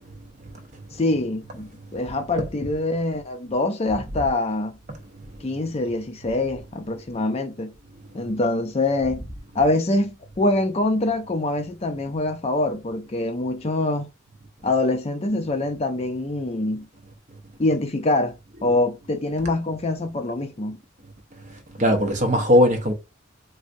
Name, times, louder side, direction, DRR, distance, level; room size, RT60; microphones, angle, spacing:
voice 1, 1.0-4.7 5.4-7.7 8.1-9.2 9.5-14.1 14.6-16.9 17.6-18.3 18.6-20.8, left 2 dB, 30° left, 0.5 m, -24 dB
voice 2, 21.8-22.9, equal, 40° right, 0.7 m, -19 dB
3.4 x 2.6 x 2.6 m
head